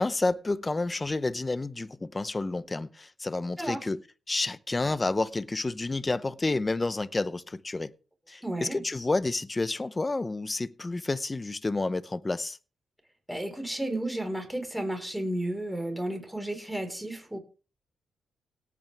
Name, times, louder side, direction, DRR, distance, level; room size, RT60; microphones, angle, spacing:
voice 1, 0.0-4.0 4.3-7.9 8.3-12.6, left 2 dB, 25° left, 0.8 m, -30 dB
voice 2, 8.4-8.8 13.3-17.4, right 1 dB, 5° right, 4.5 m, -32 dB
17.5 x 8.5 x 3.5 m
cardioid pair, 75°, 0 cm